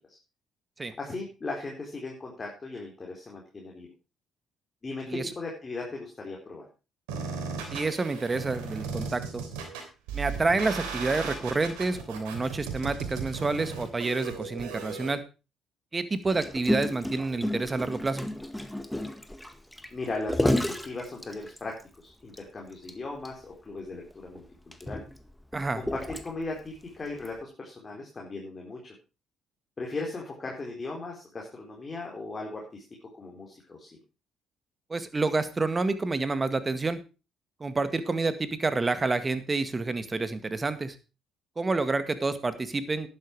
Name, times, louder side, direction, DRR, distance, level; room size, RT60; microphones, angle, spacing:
voice 1, 1.0-3.9 4.8-6.7 19.9-25.0 25.7-28.9 29.8-32.8 33.1-34.0, left 3 dB, 35° left, -1 dB, 4.3 m, -38 dB
sound 1, 7.1-15.1, right 5 dB, 85° right, 3.1 m, -36 dB
voice 2, 7.7-9.4 10.1-15.2 15.9-18.3 25.5-25.8 34.9-37.0 37.6-41.0 41.6-43.1, right 3 dB, 30° right, 11 dB, 1.9 m, -28 dB
Gurgling, 16.3-21.8 22.3-22.4 22.7-22.9 23.2-23.3 24.1-26.6 27.2-27.4, left 1 dB, 5° left, 1.9 m, -31 dB
11.5 x 9.6 x 4.8 m, 0.31 s
hypercardioid pair, 60°, 0 cm